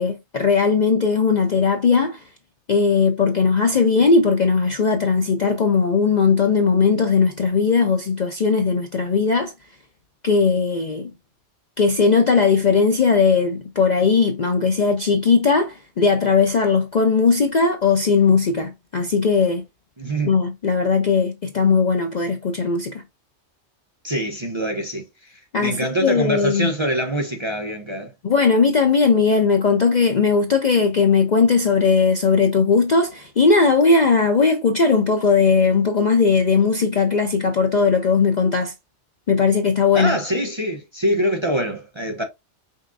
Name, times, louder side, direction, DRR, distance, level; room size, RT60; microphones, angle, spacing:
voice 1, 0.0-2.2 2.7-9.5 10.2-11.1 11.8-19.6 20.2-23.0 25.5-26.7 28.2-38.7 39.3-40.2, left 5 dB, 50° left, 0.6 m, -18 dB
voice 2, 20.0-20.3 24.0-28.1 39.9-42.2, right 1 dB, 25° right, 0.8 m, -24 dB
5.5 x 3.6 x 2.6 m
omnidirectional pair, 1.3 m